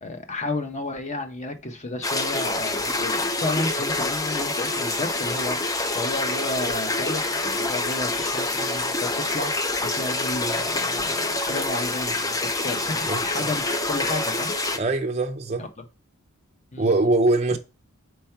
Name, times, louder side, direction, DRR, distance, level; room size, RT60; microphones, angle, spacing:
voice 1, 0.0-14.5 15.6-15.9 16.7-16.9 17.5-17.6, left 2 dB, 30° left, 1.0 m, -32 dB
sound 1, 2.0-14.8, left 2 dB, 15° left, 0.5 m, -26 dB
sound 2, 6.1-11.9, right 7 dB, 60° left, 2.0 m, -50 dB
voice 2, 14.7-15.7 16.8-17.6, right 2 dB, 30° right, 0.6 m, -22 dB
5.3 x 4.6 x 4.5 m
head